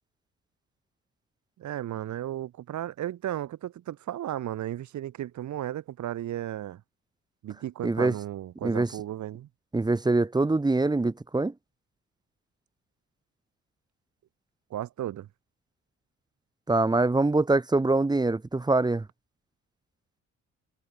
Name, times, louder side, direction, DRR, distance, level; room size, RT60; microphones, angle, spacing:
voice 1, 1.6-6.8 7.4-9.5 14.7-15.3, right 12 dB, 70° right, 2.1 m, -34 dB
voice 2, 7.8-8.1 8.6-8.9 9.7-11.5 16.7-19.0, right 2 dB, 15° right, 0.9 m, -24 dB
cardioid pair, 90°, 30 cm